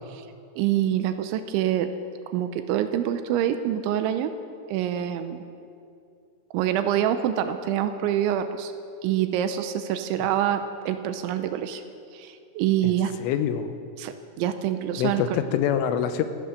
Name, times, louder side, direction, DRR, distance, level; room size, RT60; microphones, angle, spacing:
voice 1, 0.6-1.9 2.3-4.3 4.7-5.4 6.5-8.7 9.0-11.8 12.1-13.1 14.0-15.4, right 11 dB, 80° right, 9 dB, 3.0 m, -26 dB
voice 2, 13.2-13.7 15.0-16.2, left 9 dB, 85° left, 10 dB, 3.4 m, -25 dB
14.5 x 14.0 x 6.6 m, 2.4 s
omnidirectional pair, 5.6 m